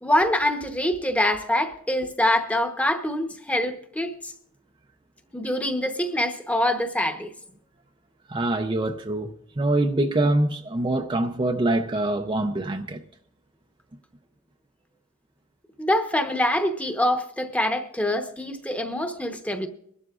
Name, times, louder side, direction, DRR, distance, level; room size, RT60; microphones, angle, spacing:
voice 1, 0.0-4.3 5.3-7.3 15.8-19.7, left 1 dB, 5° left, 1.0 m, -25 dB
voice 2, 8.3-13.0, right 2 dB, 25° right, 0.5 m, -24 dB
23.0 x 12.5 x 2.4 m
head